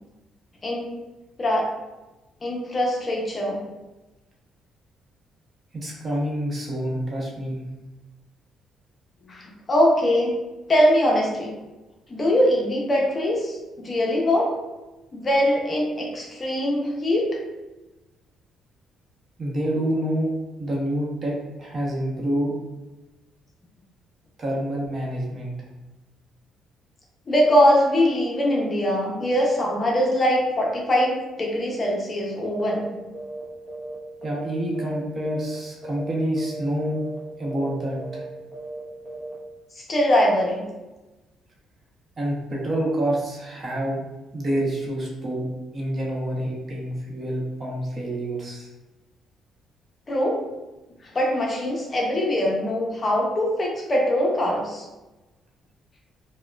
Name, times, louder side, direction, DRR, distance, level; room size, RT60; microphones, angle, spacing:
voice 1, 2.4-3.6 9.3-10.3 10.7-11.6 12.1-14.5 15.1-17.3 27.3-32.9 39.8-40.6 50.1-50.4 51.1-54.8, equal, 30° left, -2 dB, 0.7 m, -22 dB
voice 2, 5.7-7.6 19.4-20.3 20.6-22.5 24.4-25.5 34.2-37.0 37.4-38.3 42.2-44.0 44.3-45.5 45.7-48.7, right 1 dB, 35° right, -3 dB, 0.8 m, -27 dB
sound 1, 32.6-32.9 33.1-33.4 33.7-35.0 35.3-35.6 35.8-36.1 36.4-36.6 36.9-37.2 37.4-37.7 38.0-38.3 38.5-38.8 39.1-39.3, right 2 dB, 5° right, 1.0 m, -36 dB
4.6 x 2.2 x 2.3 m, 1.1 s
cardioid pair, 115°, 0 cm